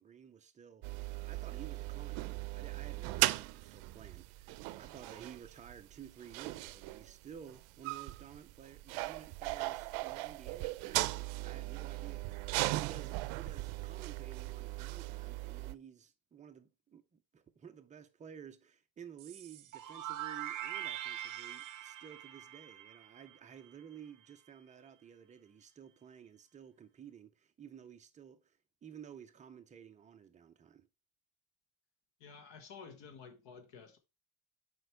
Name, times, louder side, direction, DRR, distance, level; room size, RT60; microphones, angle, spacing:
voice 1, 0.0-30.9, right 8 dB, 20° right, 0.3 m, -53 dB
sound 1, 0.8-15.7, right 20 dB, 70° right, 0.5 m, -38 dB
sound 2, 19.2-23.9, right 12 dB, 40° right, 0.8 m, -43 dB
voice 2, 32.2-34.0, left 5 dB, 60° left, 1.4 m, -52 dB
7.8 x 5.2 x 3.2 m
cardioid pair, 165°, 50 cm